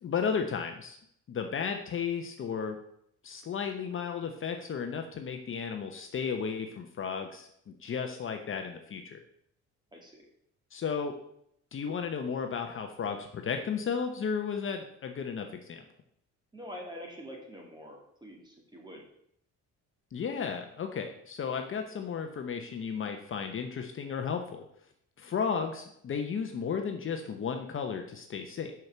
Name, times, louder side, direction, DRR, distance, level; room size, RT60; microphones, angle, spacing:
voice 1, 0.0-1.0 1.3-2.8 3.2-9.2 10.7-11.1 11.7-15.8 20.1-24.6 25.2-28.7, left 6 dB, 40° left, 5 dB, 0.9 m, -34 dB
voice 2, 9.9-10.3 16.5-19.1, equal, 15° right, 0 dB, 2.6 m, -45 dB
6.2 x 6.0 x 7.3 m, 0.72 s
cardioid pair, 115°, 31 cm